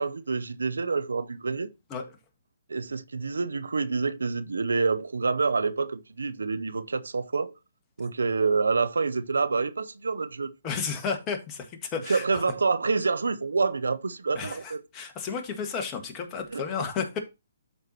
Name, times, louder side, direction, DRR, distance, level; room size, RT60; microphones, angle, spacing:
voice 1, 0.0-1.7 2.7-7.5 8.0-10.5 12.1-14.8 16.5-16.6, right 4 dB, 80° right, 0.7 m, -27 dB
voice 2, 10.6-12.4 14.4-17.1, left 6 dB, 25° left, 1.8 m, -32 dB
12.5 x 4.6 x 2.9 m
hypercardioid pair, 140°, 0 cm